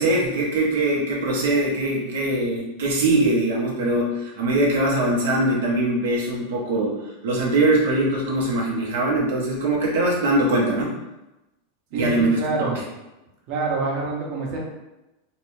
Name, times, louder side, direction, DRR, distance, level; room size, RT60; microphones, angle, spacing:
voice 1, 0.0-6.9 7.2-10.9 11.9-12.7, right 2 dB, 85° right, -3 dB, 0.7 m, -22 dB
voice 2, 11.9-12.8 13.5-14.6, right 3 dB, 50° right, -2 dB, 0.7 m, -26 dB
2.6 x 2.1 x 3.0 m, 0.97 s
supercardioid pair, 130°, 0 cm